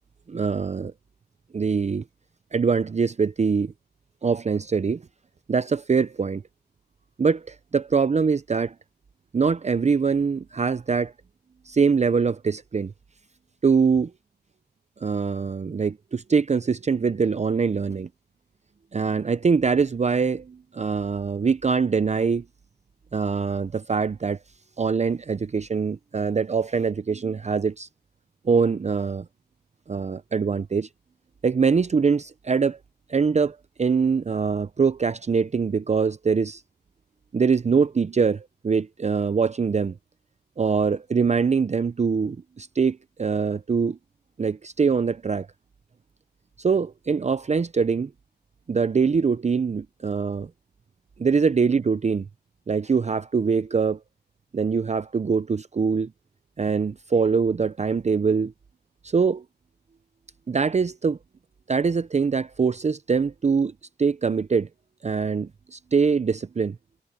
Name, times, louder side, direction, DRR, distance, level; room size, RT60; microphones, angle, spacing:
voice 1, 0.3-0.9 1.5-2.0 2.5-3.7 4.2-5.0 5.5-6.4 7.2-8.7 9.3-11.1 11.7-12.9 13.6-14.1 15.0-18.1 18.9-22.4 23.1-24.4 24.8-27.9 28.4-29.2 29.9-30.9 31.4-32.8 33.1-36.6 37.3-39.9 40.6-44.0 44.4-45.5 46.6-48.1 48.7-50.5 51.2-52.3 52.7-54.0 54.5-56.1 56.6-58.5 59.0-59.4 60.5-61.2 61.7-63.7 64.0-64.7 65.0-66.8, right 5 dB, 40° right, 0.5 m, -23 dB
cardioid pair, 65°, 18 cm